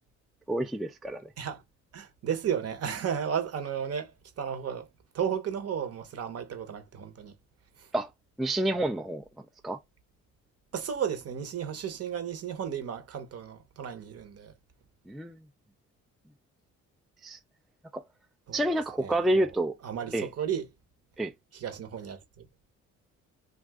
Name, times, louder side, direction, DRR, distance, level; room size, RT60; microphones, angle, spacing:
voice 1, 0.5-1.3 7.9-8.1 8.4-9.8 15.1-15.4 17.2-17.4 17.9-18.0 18.5-19.7 20.1-20.3 21.2-21.3, right 1 dB, ahead, 0.3 m, -29 dB
voice 2, 1.9-4.1 4.4-4.9 5.1-7.3 7.8-7.9 10.7-14.5 18.5-18.7 19.0-19.5 19.8-20.7 21.5-22.5, right 8 dB, 55° right, 0.9 m, -34 dB
2.4 x 2.4 x 3.4 m
cardioid pair, 90°, 30 cm